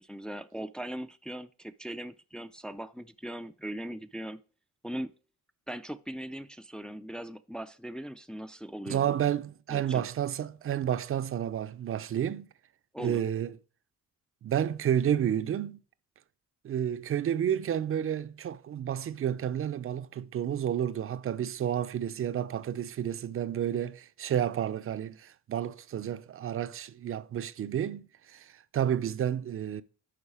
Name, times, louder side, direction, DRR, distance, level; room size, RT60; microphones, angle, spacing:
voice 1, 0.0-4.4 4.8-5.1 5.7-9.2 9.7-10.1 12.9-13.2, right 1 dB, 5° left, 0.4 m, -39 dB
voice 2, 8.9-12.5 13.0-13.6 14.4-15.8 16.6-29.8, right 9 dB, 45° right, 0.6 m, -31 dB
11.0 x 3.8 x 4.9 m
cardioid pair, 90°, 30 cm